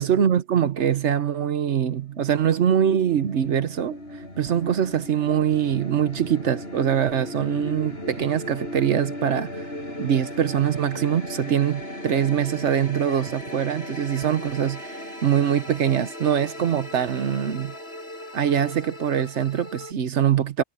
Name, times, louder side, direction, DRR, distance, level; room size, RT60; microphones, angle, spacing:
voice 1, 0.0-3.9 4.4-9.7 10.0-17.7 18.3-20.6, right 9 dB, 85° right, 1.3 m, -23 dB
sound 1, 1.6-19.9, left 1 dB, 65° left, 8.0 m, -37 dB
omnidirectional pair, 1.1 m